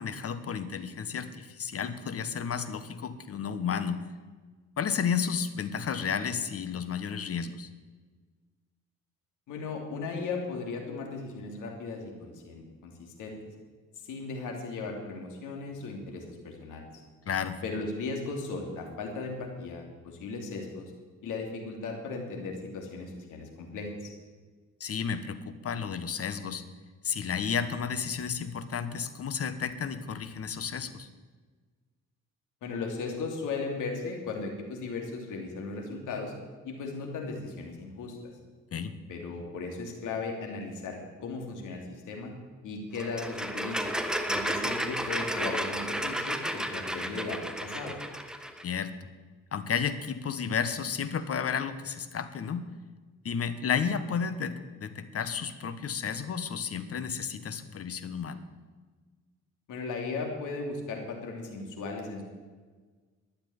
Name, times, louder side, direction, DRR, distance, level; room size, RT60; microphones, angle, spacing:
voice 1, 0.0-4.0 4.8-7.7 17.2-17.6 24.8-26.6 27.0-31.1 38.7-38.9 48.6-49.0 49.5-52.7 53.2-58.4, left 7 dB, 50° left, 11 dB, 1.4 m, -32 dB
voice 2, 9.5-13.4 14.0-16.9 17.6-20.9 21.2-24.1 32.6-36.3 36.6-38.2 39.1-42.3 42.6-43.9 44.3-48.0 59.7-62.2, left 3 dB, 80° left, 2 dB, 3.0 m, -37 dB
sound 1, 42.9-48.6, equal, ahead, 1.3 m, -32 dB
12.5 x 8.9 x 9.7 m, 1.4 s
cardioid pair, 90°, 30 cm